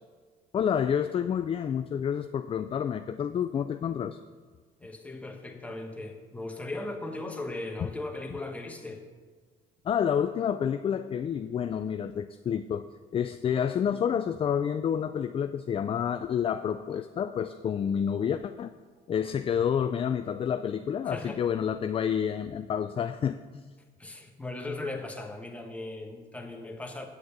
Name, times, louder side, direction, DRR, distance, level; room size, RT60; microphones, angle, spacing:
voice 1, 0.5-4.2 9.8-12.9 13.1-18.7 19.1-23.7, left 8 dB, 35° left, 10 dB, 0.4 m, -29 dB
voice 2, 4.8-9.0 19.7-19.8 21.0-21.4 24.0-27.1, left 2 dB, 10° left, 2 dB, 1.3 m, -38 dB
8.9 x 6.5 x 8.1 m, 1.5 s
cardioid pair, 110°, 17 cm